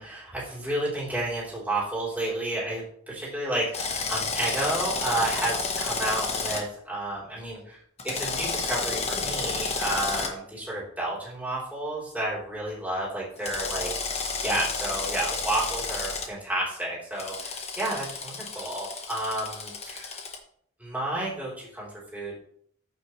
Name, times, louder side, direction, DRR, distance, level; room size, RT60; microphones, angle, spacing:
voice 1, 0.0-20.2 20.8-22.3, right 1 dB, 5° right, -7 dB, 3.9 m, -31 dB
Drill, 3.7-6.6 8.0-10.3 13.4-16.3 17.2-20.4, left 4 dB, 30° left, 1.3 m, -31 dB
14.0 x 6.2 x 3.3 m, 0.65 s
head